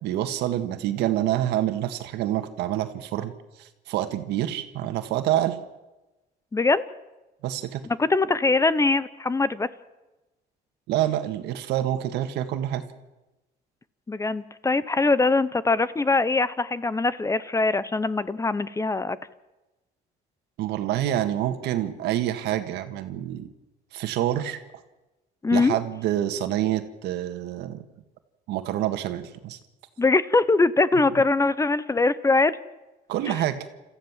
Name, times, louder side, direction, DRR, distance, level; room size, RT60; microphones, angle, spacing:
voice 1, 0.0-3.3 3.6-5.6 7.4-7.9 10.9-12.8 20.6-23.5 23.9-24.6 25.5-27.8 28.5-29.6 33.1-33.6, right 12 dB, 85° right, 9 dB, 1.7 m, -27 dB
voice 2, 6.5-6.8 8.0-9.7 14.1-19.2 25.4-25.8 30.0-32.5, left 3 dB, 20° left, 16 dB, 0.8 m, -22 dB
27.5 x 14.5 x 7.4 m, 1.1 s
cardioid pair, 110°, 17 cm